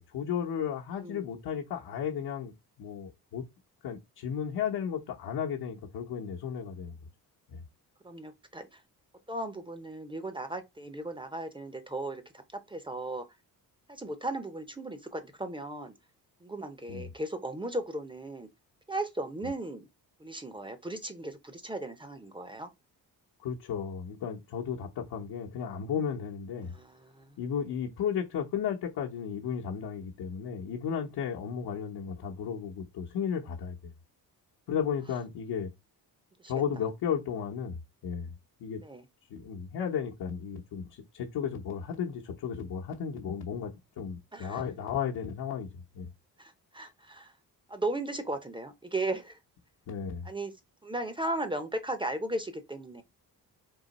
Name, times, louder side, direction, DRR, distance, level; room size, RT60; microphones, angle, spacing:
voice 1, 0.0-3.4 3.8-7.0 7.5-7.6 16.9-17.1 23.4-26.7 27.4-33.9 34.7-35.7 36.5-38.3 38.6-38.8 39.3-43.7 44.0-45.7 45.9-46.1 49.9-50.3, left 7 dB, 70° left, 0.9 m, -34 dB
voice 2, 8.0-8.8 9.3-12.2 12.7-13.2 13.9-15.9 16.4-18.5 18.9-19.9 20.2-22.7 26.7-27.4 36.4-36.5 38.8-39.1 44.3-44.6 46.4-47.3 47.7-49.4 50.2-50.5 50.8-53.0, right 2 dB, 15° right, 0.6 m, -36 dB
3.9 x 2.9 x 4.1 m
cardioid pair, 130°, 38 cm